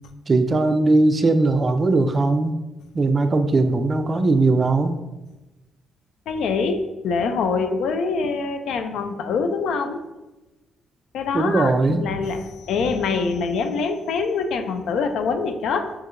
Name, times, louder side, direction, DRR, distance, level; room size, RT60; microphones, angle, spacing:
voice 1, 0.3-2.6 2.9-5.0 11.3-12.1, right 2 dB, 30° right, 8 dB, 0.3 m, -19 dB
voice 2, 6.3-10.0 11.1-15.9, left 4 dB, 75° left, 7 dB, 0.4 m, -24 dB
5.1 x 2.7 x 2.5 m, 1.1 s
cardioid pair, 90°, 0 cm